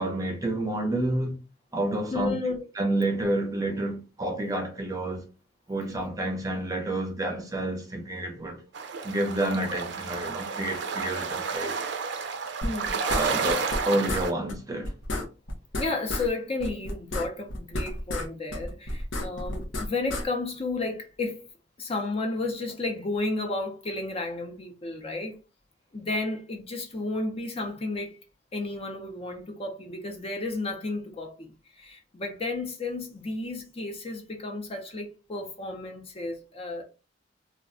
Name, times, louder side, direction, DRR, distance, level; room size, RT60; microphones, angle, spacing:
voice 1, 0.0-1.4 1.7-2.3 2.8-5.3 5.7-8.7 9.0-11.8 13.0-14.9, right 1 dB, 20° right, 0.6 m, -29 dB
voice 2, 2.1-2.6 12.6-13.1 15.8-21.5 21.8-25.4 25.9-28.2 28.5-36.8, left 2 dB, 30° left, 0.5 m, -32 dB
sound 1, 8.7-14.3, right 5 dB, 65° right, 0.5 m, -31 dB
sound 2, 12.6-13.8 14.1-14.2 14.5-14.6 14.8-16.3 16.6-18.3 18.5-20.2, left 1 dB, 80° left, 0.7 m, -31 dB
2.3 x 2.1 x 3.6 m
head